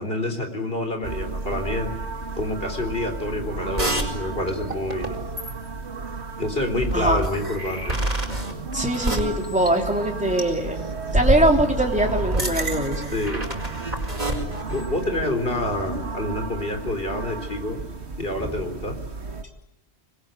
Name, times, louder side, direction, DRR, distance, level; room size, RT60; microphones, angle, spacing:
voice 1, 0.0-1.9 2.4-5.2 6.4-7.9 13.1-13.4 14.7-17.8 18.2-19.0, left 1 dB, 55° left, 5 dB, 4.2 m, -27 dB
sound 1, 1.0-19.4, right 4 dB, 70° right, 2.2 m, -34 dB
sound 2, 3.8-4.1 4.5-5.1 5.4-5.7 6.8-10.1 10.4-10.6 11.1-14.8, right 1 dB, 35° right, 4.6 m, -27 dB
voice 2, 8.7-10.9 11.1-13.1, right 1 dB, 5° right, 1 dB, 3.3 m, -22 dB
26.5 x 21.0 x 9.2 m, 0.85 s
omnidirectional pair, 1.1 m